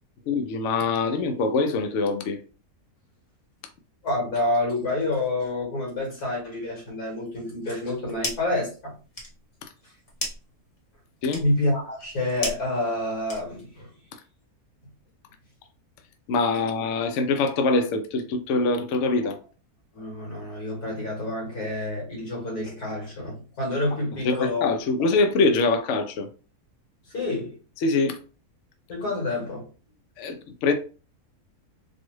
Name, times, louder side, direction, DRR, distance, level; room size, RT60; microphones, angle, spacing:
voice 1, 0.3-2.4 11.2-11.4 16.3-19.4 24.2-26.3 27.8-28.2 30.2-30.7, left 3 dB, 65° left, 0.8 m, -24 dB
voice 2, 4.0-8.9 11.4-13.9 19.9-25.1 27.1-27.6 28.9-29.7, left 2 dB, 85° left, 2.4 m, -28 dB
sound 1, 7.7-8.6 8.9-13.8, left 1 dB, 30° left, 0.8 m, -36 dB
3.9 x 2.4 x 3.1 m
omnidirectional pair, 1.6 m